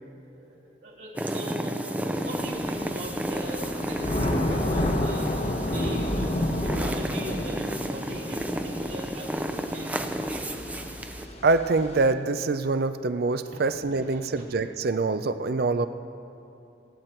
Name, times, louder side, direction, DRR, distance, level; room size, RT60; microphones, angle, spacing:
voice 1, 0.3-5.3 5.6-10.5 13.5-13.6 14.1-14.5, equal, 75° right, -5 dB, 3.4 m, -40 dB
sound 1, 1.2-11.3, right 1 dB, 10° right, 0.5 m, -32 dB
Thunder / Rain, 2.2-12.1, left 1 dB, 35° left, 1.0 m, -31 dB
voice 2, 11.4-15.9, right 3 dB, 55° right, 11 dB, 0.5 m, -25 dB
24.0 x 9.3 x 4.5 m, 2.8 s
head